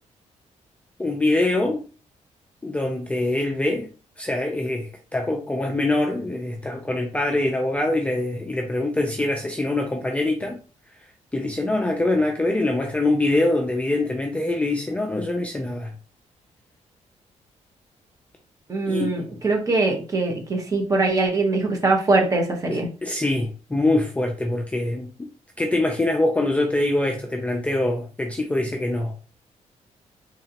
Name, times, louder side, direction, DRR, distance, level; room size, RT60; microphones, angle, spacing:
voice 1, 1.0-1.8 2.6-3.9 4.2-10.6 11.3-15.9 18.9-19.2 22.7-25.1 25.6-29.1, left 2 dB, 10° left, 0.4 m, -24 dB
voice 2, 18.7-22.9, right 3 dB, 25° right, 1.0 m, -22 dB
3.8 x 3.1 x 2.9 m
wide cardioid pair, 160°, 13 cm